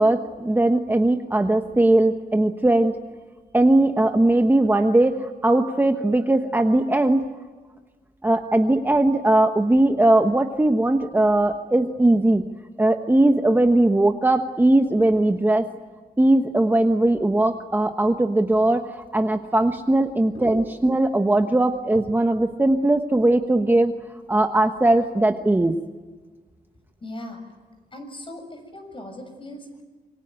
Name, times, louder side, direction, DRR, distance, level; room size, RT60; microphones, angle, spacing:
voice 1, 0.0-2.9 3.5-7.2 8.2-12.4 12.8-15.6 16.2-23.9 24.3-25.8, right 1 dB, 10° right, 5 dB, 1.2 m, -19 dB
voice 2, 27.0-27.4 27.9-29.8, left 1 dB, 30° left, 6 dB, 6.8 m, -38 dB
27.0 x 23.5 x 9.0 m, 1.4 s
wide cardioid pair, 120°, 17 cm